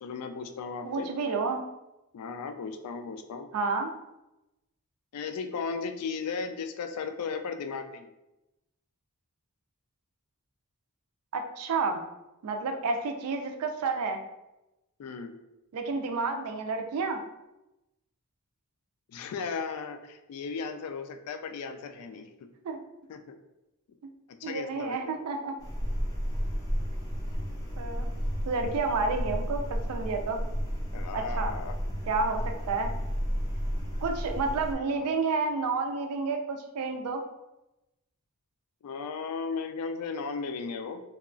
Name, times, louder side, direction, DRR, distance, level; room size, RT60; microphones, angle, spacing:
voice 1, 0.0-1.1 2.1-3.5 5.1-8.1 15.0-15.3 19.1-22.3 23.1-23.4 24.4-25.2 30.9-31.7 38.8-41.0, left 5 dB, 80° left, 7 dB, 0.3 m, -36 dB
voice 2, 0.8-1.6 3.5-3.9 11.3-12.0 12.4-14.2 15.7-17.2 22.6-22.8 24.4-25.5 27.8-28.1 28.5-30.4 31.1-31.5 32.1-32.4 32.7-32.9 34.0-37.2, right 4 dB, 75° right, 5 dB, 0.4 m, -30 dB
sound 1, 25.6-34.8, equal, 15° left, 0.6 m, -32 dB
2.9 x 2.3 x 2.4 m, 0.95 s
head